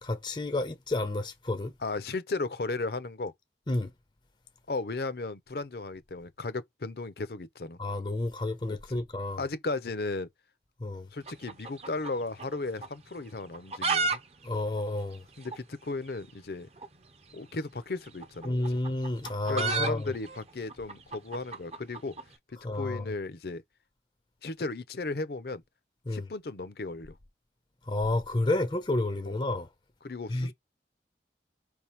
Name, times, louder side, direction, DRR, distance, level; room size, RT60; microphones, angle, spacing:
voice 1, 0.0-1.7 3.7-3.9 7.8-9.4 10.8-11.1 14.4-15.2 18.4-20.1 22.6-23.0 26.1-26.2 27.9-29.7 30.3-30.5, left 2 dB, 25° left, 0.6 m, -30 dB
voice 2, 1.8-3.3 4.7-7.8 8.7-9.0 9.4-10.3 11.1-14.2 15.4-16.7 17.3-18.8 19.5-22.2 22.5-23.6 24.4-25.6 26.1-27.2 29.3-29.4 30.0-30.5, left 3 dB, 60° left, 0.7 m, -35 dB
sound 1, 11.2-12.6 12.8-12.9 13.4-14.2 14.4-14.5 14.8-14.9 15.5-15.6 16.7-16.9 18.1-22.3, right 4 dB, 35° right, 0.7 m, -32 dB
5.0 x 3.5 x 2.9 m
head